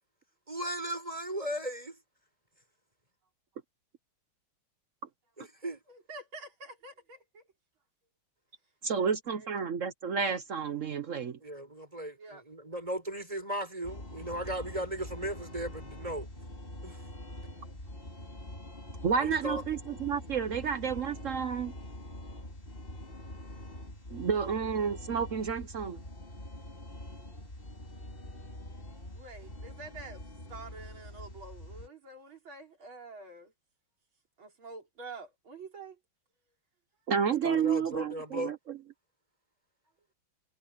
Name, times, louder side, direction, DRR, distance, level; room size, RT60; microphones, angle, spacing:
voice 1, 0.5-2.0 5.4-5.8 11.4-16.3 16.8-17.0 19.1-19.8 37.4-38.5, right 1 dB, 15° right, 6.6 m, -36 dB
voice 2, 5.9-7.4 8.9-9.7 12.2-12.4 29.1-33.5 34.4-36.0, right 3 dB, 80° right, 4.7 m, -48 dB
voice 3, 8.8-11.4 19.0-21.7 24.1-26.0 37.1-38.8, right 6 dB, 55° right, 0.9 m, -30 dB
sound 1, 13.8-31.9, left 1 dB, 25° left, 3.5 m, -45 dB
omnidirectional pair, 2.2 m